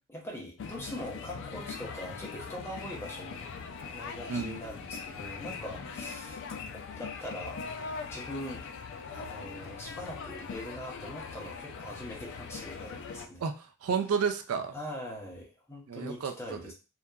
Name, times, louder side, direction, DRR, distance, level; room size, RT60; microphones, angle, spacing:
voice 1, 0.1-3.5 3.9-6.4 6.7-7.6 8.1-8.7 9.1-13.4 14.7-16.7, equal, 10° left, -1 dB, 0.7 m, -42 dB
sound 1, 0.6-13.3, left 5 dB, 60° left, 0.3 m, -41 dB
voice 2, 4.3-4.6 13.4-14.7 15.9-16.7, right 6 dB, 70° right, 7 dB, 0.3 m, -31 dB
2.8 x 2.3 x 2.3 m, 0.32 s
head